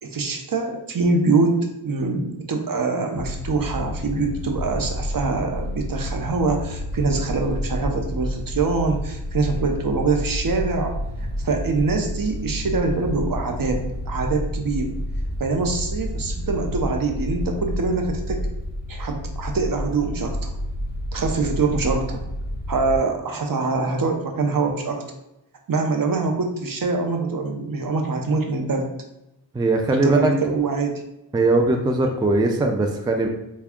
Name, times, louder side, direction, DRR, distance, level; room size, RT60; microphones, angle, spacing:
voice 1, 0.0-1.6 1.8-10.9 11.4-14.9 15.4-18.5 18.9-20.5 21.1-22.2 22.7-25.0 25.7-28.9 30.0-31.0, right 3 dB, 50° right, 4 dB, 0.7 m, -24 dB
sound 1, 3.2-23.0, left 1 dB, 25° left, 0.7 m, -30 dB
voice 2, 29.5-30.3 31.3-33.3, right 2 dB, 10° right, 3 dB, 0.3 m, -20 dB
3.4 x 2.3 x 3.5 m, 0.90 s
cardioid pair, 55°, 45 cm